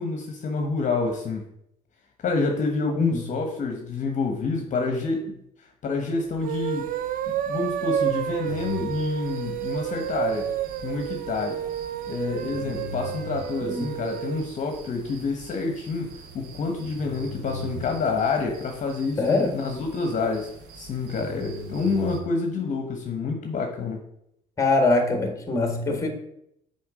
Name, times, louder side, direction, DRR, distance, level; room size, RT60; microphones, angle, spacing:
voice 1, 0.0-1.4 2.2-6.9 7.3-10.5 10.8-11.6 12.1-20.5 20.7-24.0, left 4 dB, 45° left, 3 dB, 1.1 m, -28 dB
sound 1, 6.3-14.5, right 11 dB, 55° right, 0.6 m, -30 dB
sound 2, 8.4-22.2, right 1 dB, 90° right, 1.4 m, -41 dB
voice 2, 13.7-14.0 19.2-19.5 24.6-26.1, left 3 dB, 20° left, 4 dB, 1.7 m, -23 dB
6.9 x 4.4 x 5.0 m, 0.76 s
cardioid pair, 110°, 17 cm